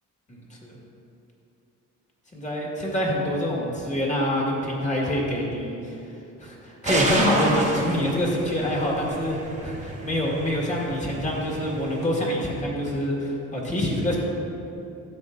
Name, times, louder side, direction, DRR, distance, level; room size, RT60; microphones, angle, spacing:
voice 1, 0.3-0.8 2.3-6.0 6.4-14.2, equal, 25° left, -3 dB, 1.7 m, -26 dB
sound 1, 6.9-12.1, right 2 dB, 25° right, 1.1 m, -30 dB
11.5 x 7.1 x 2.5 m, 2.8 s
cardioid pair, 110°, 30 cm